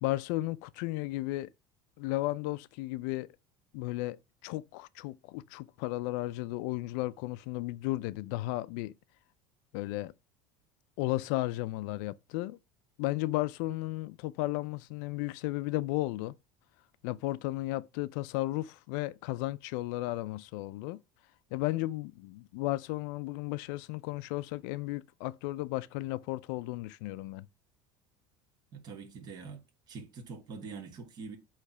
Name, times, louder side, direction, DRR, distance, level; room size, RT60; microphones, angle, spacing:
voice 1, 0.0-1.5 2.0-3.3 3.7-4.2 4.4-8.9 9.7-10.1 11.0-12.6 13.0-16.3 17.0-21.0 21.5-27.5, left 18 dB, 75° left, 0.5 m, -34 dB
voice 2, 28.7-31.4, right 4 dB, 40° right, 1.7 m, -44 dB
8.2 x 3.2 x 5.8 m
supercardioid pair, 115°, 10 cm